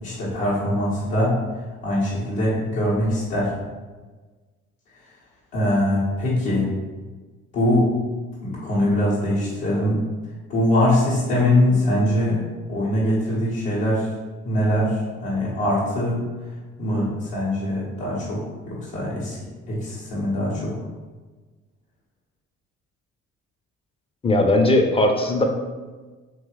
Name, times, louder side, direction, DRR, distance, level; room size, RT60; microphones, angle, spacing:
voice 1, 0.0-1.4 1.8-3.5 5.5-6.7 7.5-7.9 8.4-10.0 10.5-12.4 12.7-14.1 14.4-16.3 16.8-19.4 19.7-20.7, left 1 dB, 75° left, -9 dB, 1.5 m, -22 dB
voice 2, 24.2-25.4, left 1 dB, 15° left, 3 dB, 0.5 m, -18 dB
3.2 x 3.0 x 3.1 m, 1.3 s
figure-of-eight pair, 45°, 35 cm